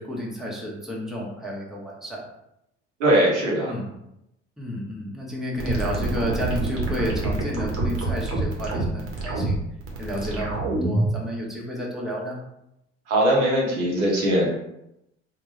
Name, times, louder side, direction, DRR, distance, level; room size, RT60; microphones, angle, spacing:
voice 1, 0.0-2.2 3.6-3.9 4.6-9.6 10.0-12.4, equal, ahead, -4 dB, 1.1 m, -31 dB
voice 2, 3.0-3.7 13.1-14.5, right 1 dB, 80° right, -4 dB, 1.0 m, -20 dB
sound 1, 5.6-11.2, right 2 dB, 40° right, 1.1 m, -26 dB
3.5 x 2.2 x 3.1 m, 0.83 s
hypercardioid pair, 60°, 34 cm